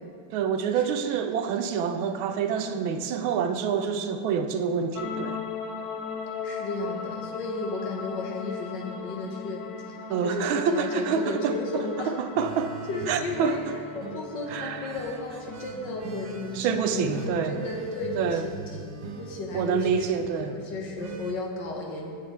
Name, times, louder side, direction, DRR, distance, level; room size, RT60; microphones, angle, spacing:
voice 1, 0.3-5.4 10.1-11.5 12.1-12.7 13.1-13.6 14.5-15.0 16.5-17.6 18.2-18.5 19.5-20.6, right 7 dB, 85° right, 8 dB, 1.4 m, -27 dB
sound 1, 5.0-18.2, left 6 dB, 85° left, 0.8 m, -39 dB
voice 2, 6.4-10.0 10.2-12.2 12.9-13.6 13.9-22.1, left 2 dB, 65° left, 0 dB, 1.7 m, -34 dB
sound 2, 12.4-21.3, right 5 dB, 65° right, 1.1 m, -42 dB
15.0 x 5.1 x 4.2 m, 2.3 s
omnidirectional pair, 2.2 m